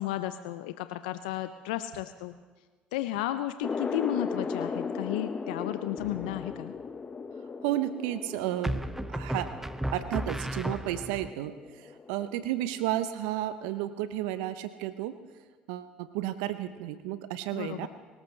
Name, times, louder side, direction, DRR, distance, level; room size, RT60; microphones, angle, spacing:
voice 1, 0.0-2.3 2.9-6.7 17.5-17.9, left 14 dB, 80° left, 11 dB, 0.5 m, -33 dB
sound 1, 3.6-12.9, left 5 dB, 30° left, 0.9 m, -37 dB
sound 2, 6.0-6.5 8.6-11.3, right 1 dB, 5° right, 0.7 m, -34 dB
voice 2, 7.6-8.8 9.1-9.5 9.9-15.2 15.7-17.9, right 13 dB, 75° right, 12 dB, 0.7 m, -32 dB
23.0 x 14.0 x 3.3 m, 1.3 s
hypercardioid pair, 65°, 5 cm